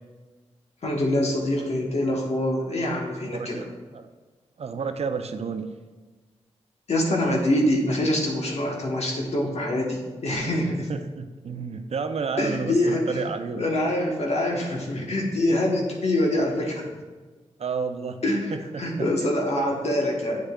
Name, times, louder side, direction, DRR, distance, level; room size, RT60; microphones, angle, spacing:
voice 1, 0.8-3.6 6.9-10.9 12.4-13.2 13.5-16.9 18.2-20.4, left 1 dB, 65° left, -1 dB, 1.2 m, -25 dB
voice 2, 3.2-4.1 4.6-5.7 10.9-13.6 17.6-18.2 18.5-19.1, right 5 dB, 60° right, 8 dB, 0.5 m, -31 dB
7.8 x 6.6 x 2.3 m, 1.3 s
cardioid pair, 50°, 12 cm